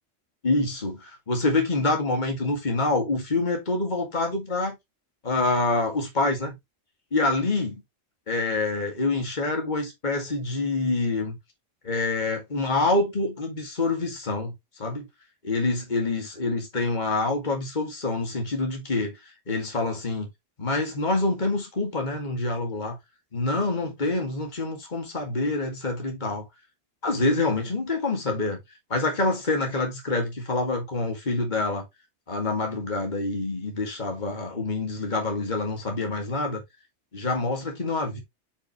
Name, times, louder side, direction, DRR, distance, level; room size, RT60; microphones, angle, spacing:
voice 1, 0.4-4.8 5.2-6.5 7.1-7.8 8.3-11.4 11.8-14.5 14.8-15.1 15.4-19.2 19.5-20.3 20.6-23.0 23.3-26.5 27.0-28.6 28.9-31.8 32.3-36.6 37.1-38.2, left 2 dB, 40° left, 2.2 m, -26 dB
8.5 x 5.6 x 3.0 m
omnidirectional pair, 1.2 m